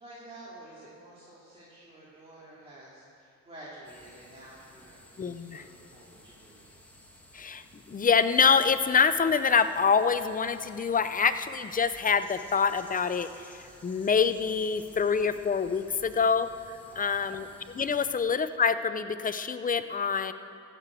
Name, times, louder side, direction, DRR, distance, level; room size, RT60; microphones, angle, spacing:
voice 1, 0.0-5.0 5.5-6.7 16.9-17.5 18.1-18.2, right 1 dB, 20° right, -8 dB, 3.0 m, -50 dB
sound 1, 3.8-18.1, left 1 dB, 5° left, 2.1 m, -54 dB
voice 2, 5.2-5.6 7.3-17.5 17.7-20.3, left 6 dB, 30° left, 11 dB, 0.6 m, -26 dB
14.5 x 6.8 x 7.6 m, 2.4 s
cardioid pair, 90°, 30 cm